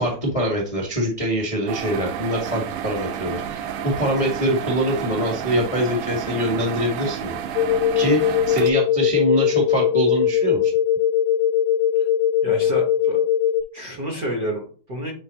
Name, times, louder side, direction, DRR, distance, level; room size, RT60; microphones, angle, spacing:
voice 1, 0.0-7.4 7.9-10.7, equal, 50° left, -3 dB, 0.4 m, -24 dB
sound 1, 1.7-8.7, right 9 dB, 90° right, 2.2 m, -30 dB
sound 2, 7.6-13.6, left 9 dB, 80° left, 1.6 m, -20 dB
voice 2, 12.4-13.2 13.7-15.1, right 1 dB, 40° right, -1 dB, 1.4 m, -29 dB
8.4 x 4.2 x 2.9 m, 0.42 s
omnidirectional pair, 3.6 m